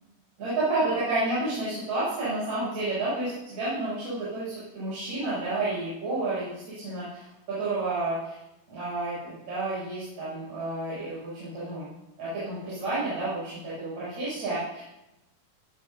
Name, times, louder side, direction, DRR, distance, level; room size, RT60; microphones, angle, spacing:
voice 1, 0.4-8.4 8.7-11.9 12.2-14.8, right 2 dB, 50° right, -10 dB, 8.3 m, -30 dB
19.0 x 16.5 x 2.8 m, 0.90 s
omnidirectional pair, 4.4 m